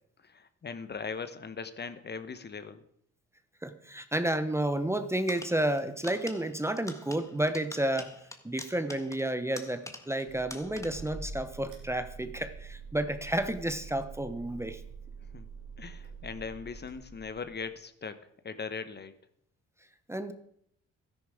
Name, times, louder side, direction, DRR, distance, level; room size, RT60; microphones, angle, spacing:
voice 1, 0.2-2.8 15.2-15.5 15.8-19.1, left 5 dB, 35° left, 11 dB, 1.0 m, -40 dB
voice 2, 3.6-8.1 8.4-14.8 20.1-20.3, right 1 dB, 10° right, 11 dB, 0.9 m, -31 dB
sound 1, 5.3-10.3 10.5-11.2, left 1 dB, 10° left, 1.5 m, -46 dB
sound 2, 10.2-17.6, right 4 dB, 90° right, 3.1 m, -46 dB
13.0 x 10.5 x 4.9 m, 0.70 s
cardioid pair, 90°, 30 cm